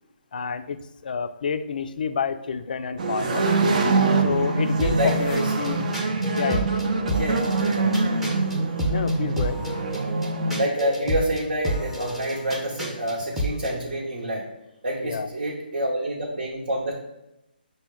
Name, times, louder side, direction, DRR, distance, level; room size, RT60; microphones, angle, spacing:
voice 1, 0.3-3.5 4.2-5.9 6.4-6.7 8.9-9.6 15.0-15.3, left 6 dB, 55° left, 10 dB, 0.3 m, -28 dB
sound 1, 3.0-10.7, right 3 dB, 45° right, 0.5 m, -24 dB
voice 2, 4.7-5.5 7.1-7.3 7.6-8.2 8.7-8.8 10.6-14.5 14.8-17.0, right 1 dB, 65° right, -3 dB, 0.9 m, -28 dB
sound 2, 4.8-13.8, equal, 5° right, 0.6 m, -31 dB
6.2 x 2.1 x 3.5 m, 0.91 s
figure-of-eight pair, 145°, 6 cm